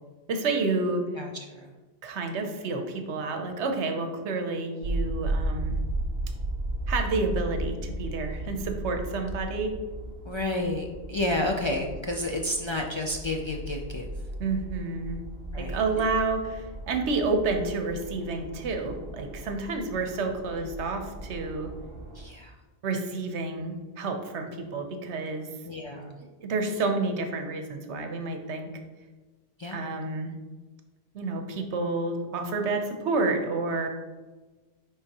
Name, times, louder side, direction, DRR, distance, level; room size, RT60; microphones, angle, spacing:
voice 1, 0.3-1.0 2.0-5.8 6.9-9.8 14.4-15.2 15.6-21.7 22.8-25.5 26.4-28.7 29.7-30.3 31.1-33.9, right 3 dB, 80° right, 5 dB, 1.0 m, -29 dB
voice 2, 1.2-1.7 10.2-14.1 15.5-16.1 20.6-20.7 22.1-22.6 25.7-26.2 29.6-29.9, left 1 dB, 50° left, 1 dB, 0.3 m, -31 dB
sound 1, 4.8-22.3, right 1 dB, 60° right, 0.8 m, -35 dB
9.7 x 3.5 x 2.9 m, 1.3 s
omnidirectional pair, 1.1 m